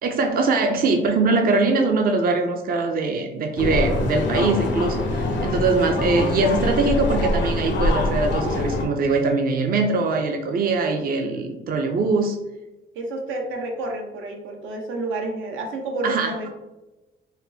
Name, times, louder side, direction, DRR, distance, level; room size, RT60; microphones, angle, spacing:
voice 1, 0.0-12.4 16.0-16.3, right 3 dB, 50° right, 4 dB, 0.5 m, -22 dB
sound 1, 3.6-8.9, left 2 dB, 70° left, 0.6 m, -24 dB
voice 2, 12.9-16.5, right 2 dB, 85° right, 2 dB, 0.7 m, -29 dB
4.2 x 2.1 x 2.7 m, 1.0 s
cardioid pair, 90°, 20 cm